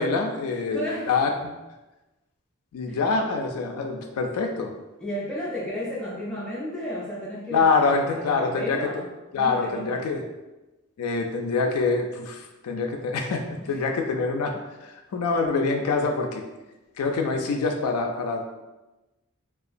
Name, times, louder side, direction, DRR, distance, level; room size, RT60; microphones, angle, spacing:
voice 1, 0.0-1.5 2.7-4.7 7.5-8.9 9.3-10.2 11.0-16.4 17.0-18.5, left 4 dB, 75° left, 3 dB, 0.3 m, -25 dB
voice 2, 0.7-1.1 2.9-3.0 5.0-10.1 13.6-13.8, equal, 5° left, -7 dB, 0.4 m, -33 dB
2.8 x 2.3 x 2.5 m, 1.1 s
head